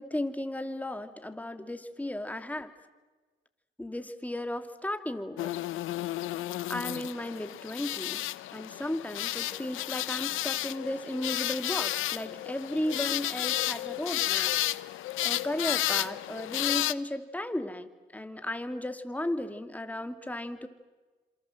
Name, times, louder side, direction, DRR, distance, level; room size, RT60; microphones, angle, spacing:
voice 1, 0.0-2.7 3.8-5.5 6.7-8.2 8.5-14.5 15.2-20.7, left 1 dB, 5° left, 8 dB, 2.6 m, -35 dB
sound 1, 5.4-16.9, left 15 dB, 85° left, 0.9 m, -32 dB
28.0 x 27.0 x 7.8 m, 1.3 s
cardioid pair, 90°, 20 cm